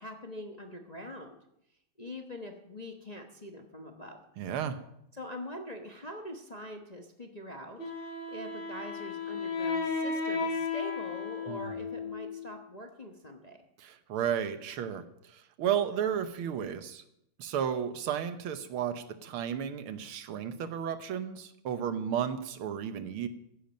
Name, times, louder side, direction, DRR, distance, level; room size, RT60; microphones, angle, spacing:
voice 1, 0.0-1.4 2.0-4.2 5.1-7.8 8.1-13.6, left 1 dB, 30° left, 2 dB, 0.8 m, -43 dB
voice 2, 4.4-4.8 11.5-11.7 13.8-17.0 17.4-23.3, right 8 dB, 90° right, 10 dB, 1.8 m, -33 dB
Wind instrument woodwind instrument, 7.8-12.6, left 4 dB, 65° left, 3.6 m, -34 dB
15.0 x 10.5 x 5.3 m, 0.78 s
omnidirectional pair, 2.3 m